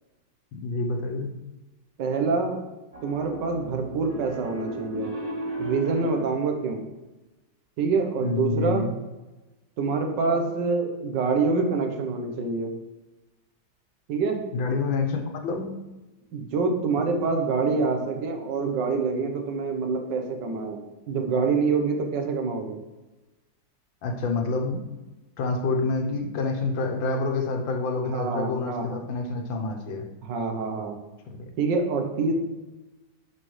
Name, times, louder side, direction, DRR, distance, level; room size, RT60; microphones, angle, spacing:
voice 1, 0.5-1.3 8.2-8.9 14.5-15.7 24.0-24.9 25.4-30.1, left 3 dB, 90° left, 4 dB, 1.7 m, -27 dB
voice 2, 2.0-2.6 3.0-5.1 5.6-6.9 7.8-8.9 9.8-12.7 14.1-14.4 16.3-22.8 28.0-29.0 30.2-31.0 31.6-32.3, right 4 dB, 70° right, 4 dB, 1.6 m, -26 dB
Piano, 2.9-6.4, right 2 dB, 25° right, 0.9 m, -35 dB
11.0 x 5.1 x 3.2 m, 1.1 s
omnidirectional pair, 2.0 m